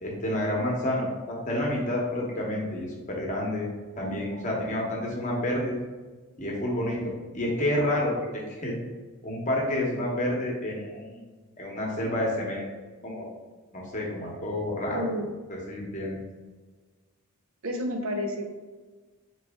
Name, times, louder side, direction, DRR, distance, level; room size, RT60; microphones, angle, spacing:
voice 1, 0.0-3.7 4.0-5.8 6.4-8.8 9.2-12.7 13.0-13.2 13.7-15.1 15.5-16.2, left 1 dB, 35° left, -2 dB, 0.9 m, -29 dB
voice 2, 4.0-4.7 14.9-15.3 17.6-18.5, equal, 65° right, 4 dB, 0.6 m, -32 dB
4.0 x 3.0 x 3.5 m, 1.3 s
head